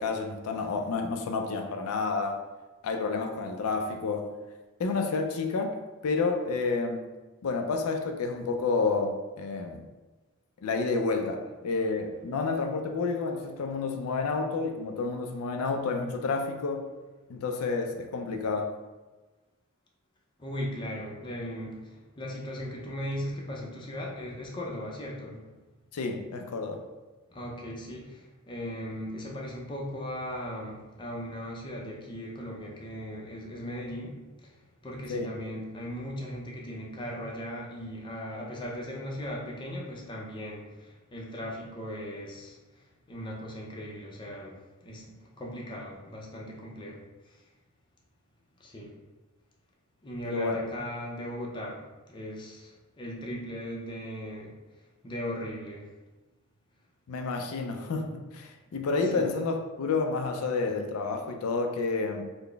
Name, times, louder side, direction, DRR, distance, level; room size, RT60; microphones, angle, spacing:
voice 1, 0.0-2.4 2.8-4.3 4.8-5.8 6.0-7.0 7.4-9.8 10.6-16.9 17.3-18.7 25.9-26.8 35.1-35.3 50.2-50.6 57.1-62.2, left 4 dB, 80° left, 4 dB, 0.4 m, -30 dB
voice 2, 20.4-25.5 27.3-34.6 34.8-47.4 48.6-48.9 50.0-51.8 52.1-54.5 55.0-55.9 58.7-58.8 59.0-59.2, equal, 20° left, -2 dB, 0.5 m, -38 dB
3.9 x 2.0 x 3.3 m, 1.2 s
head